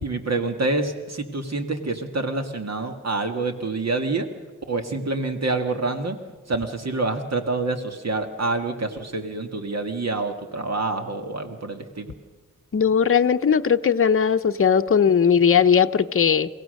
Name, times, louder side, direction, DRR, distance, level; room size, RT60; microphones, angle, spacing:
voice 1, 0.0-4.3 4.7-6.2 6.5-12.1, right 3 dB, 55° right, 6 dB, 1.9 m, -27 dB
voice 2, 12.7-16.5, left 7 dB, 45° left, 7 dB, 0.8 m, -18 dB
30.0 x 16.5 x 6.5 m, 1.3 s
wide cardioid pair, 95°, 32 cm